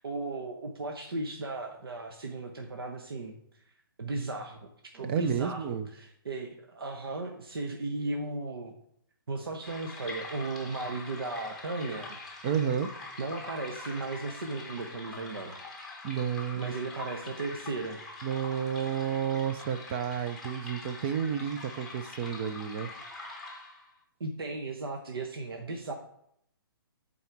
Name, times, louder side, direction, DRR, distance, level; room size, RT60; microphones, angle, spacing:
voice 1, 0.0-3.3 4.0-4.6 4.9-8.7 9.3-12.2 13.2-15.6 15.9-16.0 16.5-18.0 24.2-25.9, right 3 dB, 85° right, 3 dB, 1.0 m, -36 dB
voice 2, 5.0-5.9 12.4-12.9 16.0-16.8 18.2-22.9, right 8 dB, 30° right, 10 dB, 0.5 m, -31 dB
sound 1, 9.6-23.9, left 2 dB, ahead, 1.3 m, -44 dB
9.0 x 4.2 x 4.6 m, 0.72 s
hypercardioid pair, 150°, 12 cm